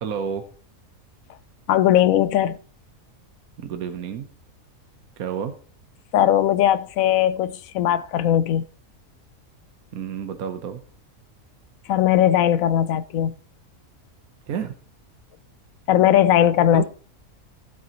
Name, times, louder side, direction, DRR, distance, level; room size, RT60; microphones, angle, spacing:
voice 1, 0.0-0.5 3.6-4.3 5.2-5.5 9.9-10.8 14.5-14.7 16.7-16.8, right 7 dB, 75° right, 1.4 m, -29 dB
voice 2, 1.7-2.6 6.1-8.6 11.9-13.3 15.9-16.8, left 11 dB, 70° left, 1.0 m, -19 dB
15.5 x 7.8 x 3.0 m
omnidirectional pair, 1.5 m